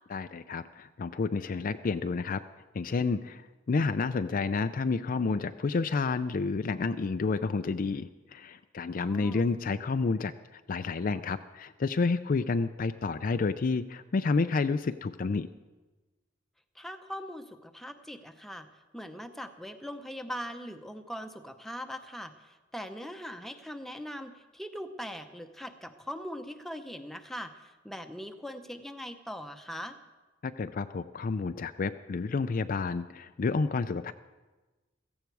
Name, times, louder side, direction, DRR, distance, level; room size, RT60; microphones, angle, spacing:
voice 1, 0.1-2.4 2.7-15.5 30.4-34.1, left 4 dB, 45° left, 10 dB, 0.4 m, -30 dB
voice 2, 9.0-9.4 16.7-18.7 18.9-30.0, equal, ahead, 6 dB, 0.8 m, -41 dB
16.0 x 15.0 x 4.7 m, 1.2 s
head